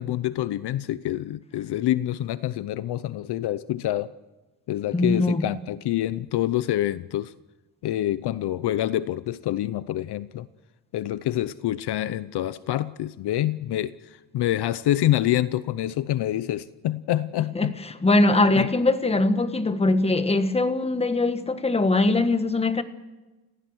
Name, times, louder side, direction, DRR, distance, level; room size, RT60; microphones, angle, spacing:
voice 1, 0.0-4.1 4.7-7.3 7.8-10.5 10.9-13.9 14.3-17.7 18.5-18.7, left 13 dB, 65° left, 0.8 m, -26 dB
voice 2, 4.9-5.5 17.5-22.8, left 2 dB, 15° left, 1.3 m, -22 dB
29.5 x 16.0 x 7.9 m
cardioid pair, 130°, 43 cm